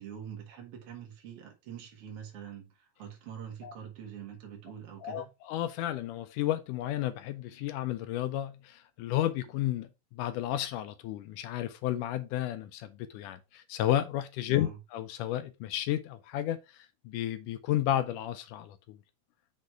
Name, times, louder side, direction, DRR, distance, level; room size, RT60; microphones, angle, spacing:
voice 1, 0.0-5.3 14.5-14.8, right 8 dB, 50° right, 2.3 m, -45 dB
voice 2, 5.0-19.0, left 12 dB, 80° left, 2.0 m, -32 dB
6.4 x 4.2 x 4.6 m
omnidirectional pair, 4.1 m